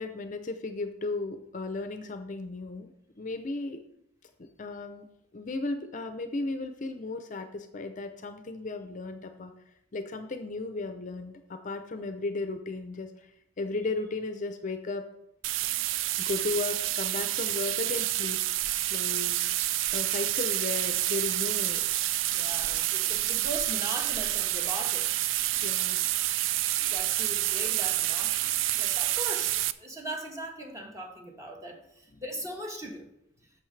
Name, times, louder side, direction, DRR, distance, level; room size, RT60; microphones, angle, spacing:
voice 1, 0.0-2.9 3.2-3.8 4.4-5.0 5.3-9.5 9.9-13.3 13.6-15.0 16.2-18.4 18.9-19.4 19.9-21.9 25.6-26.0, left 3 dB, 40° left, 8 dB, 0.6 m, -35 dB
sound 1, 15.4-29.7, right 14 dB, 85° right, 0.4 m, -28 dB
voice 2, 22.3-25.1 26.8-33.1, right 1 dB, 15° right, 1 dB, 1.3 m, -39 dB
10.5 x 6.7 x 3.3 m, 0.79 s
head